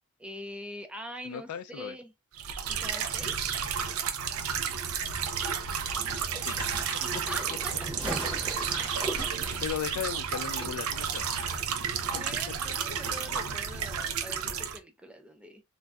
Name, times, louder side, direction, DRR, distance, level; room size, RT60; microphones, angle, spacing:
voice 1, 0.2-2.1 2.7-3.6 7.0-7.7 8.3-8.7 12.1-15.6, equal, 5° right, 0.5 m, -44 dB
voice 2, 1.2-1.9 5.7-5.8 6.4-6.6 9.6-11.4 12.6-13.1, left 8 dB, 90° left, 0.3 m, -37 dB
sound 1, 2.4-14.8, right 7 dB, 80° right, 0.5 m, -32 dB
sound 2, 5.8-10.6 10.9-11.0, right 1 dB, 20° right, 0.9 m, -39 dB
sound 3, 7.1-13.2, right 1 dB, 45° right, 1.3 m, -58 dB
2.6 x 2.3 x 3.3 m
head